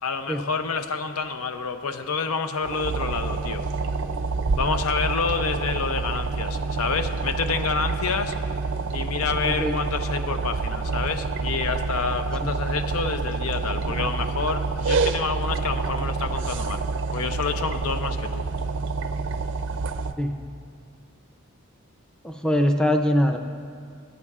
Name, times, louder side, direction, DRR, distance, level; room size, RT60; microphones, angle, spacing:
voice 1, 0.0-3.6 4.5-8.3 8.9-16.8 17.1-18.4, left 5 dB, 85° left, 8 dB, 0.6 m, -28 dB
sound 1, 2.6-20.1, right 4 dB, 60° right, 0.4 m, -27 dB
voice 2, 22.2-23.4, equal, 5° left, 4 dB, 0.5 m, -22 dB
19.0 x 9.5 x 2.4 m, 2.2 s
head